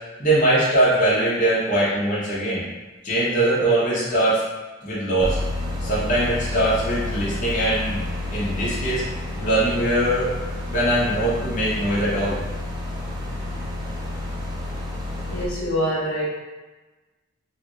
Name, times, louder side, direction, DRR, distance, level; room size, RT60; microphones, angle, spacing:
voice 1, 0.2-2.6 3.0-4.4 4.8-5.4 5.8-9.0 9.4-10.3 10.7-12.4, right 1 dB, 35° left, -9 dB, 1.0 m, -21 dB
sound 1, 5.2-15.5, left 1 dB, 20° right, 0.4 m, -30 dB
voice 2, 15.3-16.3, equal, 80° left, -5 dB, 0.7 m, -25 dB
3.2 x 2.6 x 3.0 m, 1.2 s
head